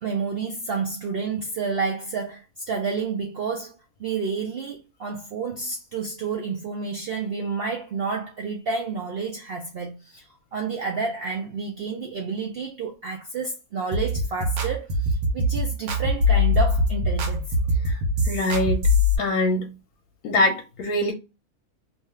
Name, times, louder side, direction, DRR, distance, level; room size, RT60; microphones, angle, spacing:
voice 1, 0.0-3.7 4.0-17.5, right 5 dB, 65° right, 0.5 m, -30 dB
sound 1, 13.9-19.2, left 2 dB, 85° right, 1.2 m, -22 dB
voice 2, 18.3-18.9 19.2-19.7 20.2-21.1, left 2 dB, 85° left, 1.1 m, -23 dB
2.8 x 2.3 x 3.1 m
omnidirectional pair, 1.5 m